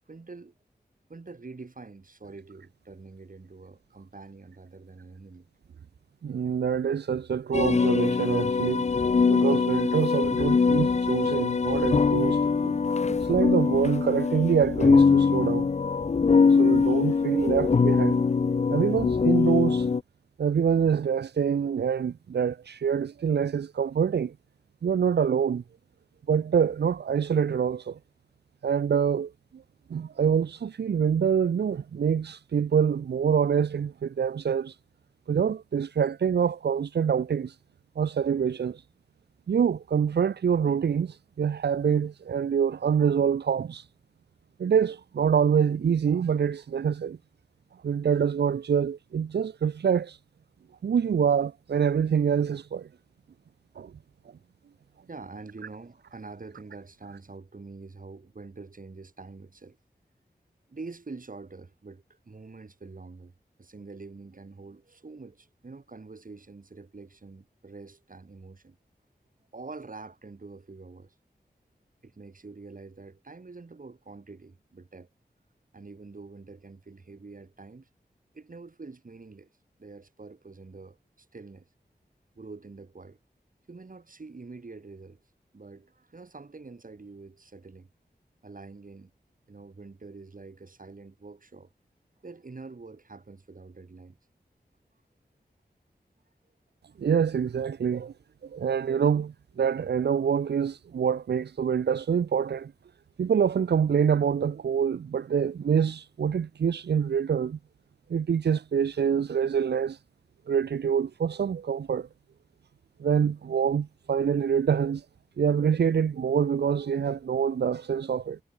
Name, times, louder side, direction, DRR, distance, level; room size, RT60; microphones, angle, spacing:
voice 1, 0.1-0.6 1.1-5.5 55.1-59.8 60.7-63.3 63.6-68.8 69.5-71.2 72.0-75.1 75.7-77.9 78.3-79.5 79.8-81.7 82.4-83.2 83.7-85.2 85.5-87.9 88.4-89.1 89.5-91.7 92.2-94.2 96.9-97.0, right 3 dB, 55° right, 6.9 m, -45 dB
voice 2, 6.2-8.9 9.3-12.8 13.2-15.7 16.4-18.2 18.7-19.9 20.4-24.3 24.8-25.6 26.3-28.0 28.6-29.6 29.9-34.8 35.3-37.6 38.0-38.8 39.5-43.9 44.6-47.2 47.8-50.2 50.8-52.9 53.8-53.9 97.0-98.1 98.4-102.7 103.2-107.6 108.1-110.0 110.5-112.1 113.0-115.0 115.4-118.4, right 7 dB, 85° right, 0.6 m, -26 dB
sound 1, 7.5-20.0, left 5 dB, 40° left, 0.5 m, -23 dB
wide cardioid pair, 90°, 17 cm